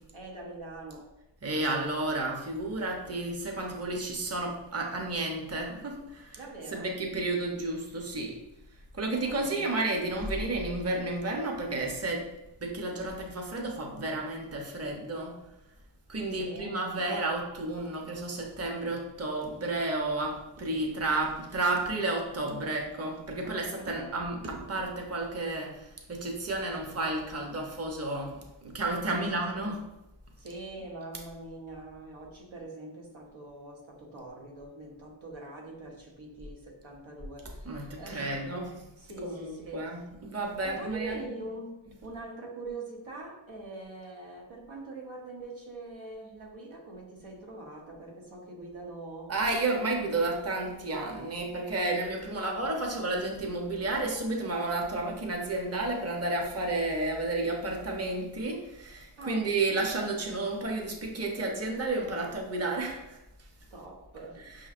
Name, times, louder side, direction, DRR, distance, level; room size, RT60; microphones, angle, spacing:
voice 1, 0.1-1.1 6.4-7.0 9.1-9.7 16.3-17.3 17.9-18.0 23.4-24.3 29.1-29.7 30.4-38.5 39.0-40.0 40.6-49.3 49.7-50.0 59.2-59.5 63.7-64.4, right 2 dB, 90° right, -1 dB, 1.0 m, -43 dB
voice 2, 1.4-6.4 6.7-8.4 8.9-12.2 12.6-15.3 16.1-29.8 37.7-38.8 39.2-41.3 49.3-63.2, right 2 dB, 30° right, 1 dB, 0.7 m, -32 dB
5.7 x 3.1 x 2.4 m, 0.94 s
wide cardioid pair, 80°, 47 cm